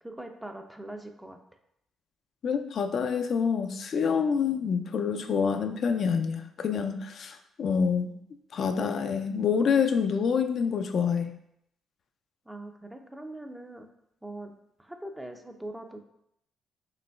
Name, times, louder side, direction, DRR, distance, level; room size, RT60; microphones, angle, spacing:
voice 1, 0.0-1.4 12.5-13.9 14.2-14.5 14.8-16.0, right 1 dB, 10° right, 5 dB, 0.4 m, -41 dB
voice 2, 2.4-8.1 8.5-11.4, left 6 dB, 60° left, 7 dB, 0.3 m, -27 dB
5.0 x 3.0 x 2.3 m, 0.76 s
cardioid pair, 90°, 0 cm